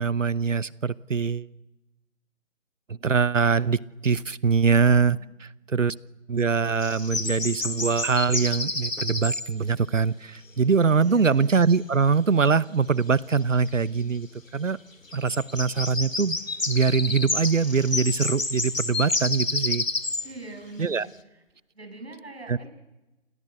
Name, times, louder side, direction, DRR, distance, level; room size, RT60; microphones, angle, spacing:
voice 1, 0.0-1.5 2.9-5.9 6.3-14.8 15.1-16.4 16.7-19.8 20.8-21.1 22.5-22.7, right 5 dB, 70° right, 20 dB, 1.0 m, -23 dB
sound 1, 6.8-9.5 13.3-13.4 13.7-13.8 15.1-20.3, left 3 dB, 75° left, 2.3 m, -29 dB
voice 2, 11.0-11.5 20.2-21.1 21.7-22.7, right 2 dB, 50° right, 5 dB, 7.1 m, -43 dB
sound 2, 15.0-21.5, right 1 dB, ahead, 3.5 m, -58 dB
28.0 x 23.5 x 8.1 m, 1.0 s
figure-of-eight pair, 160°, 39 cm